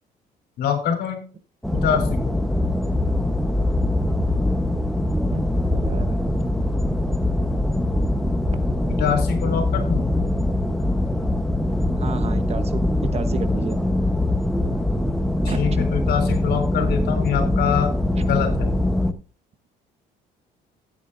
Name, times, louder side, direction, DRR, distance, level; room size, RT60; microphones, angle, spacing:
voice 1, 0.6-1.2 1.7-2.4 8.9-10.1 15.4-18.7, left 8 dB, 75° left, 6 dB, 3.6 m, -24 dB
sound 1, 1.6-19.1, left 1 dB, ahead, 1.1 m, -22 dB
voice 2, 5.7-6.2 8.8-9.0 12.0-13.8 15.5-15.8, right 6 dB, 40° right, 11 dB, 1.1 m, -33 dB
15.0 x 8.9 x 2.6 m, 0.36 s
cardioid pair, 110°, 17 cm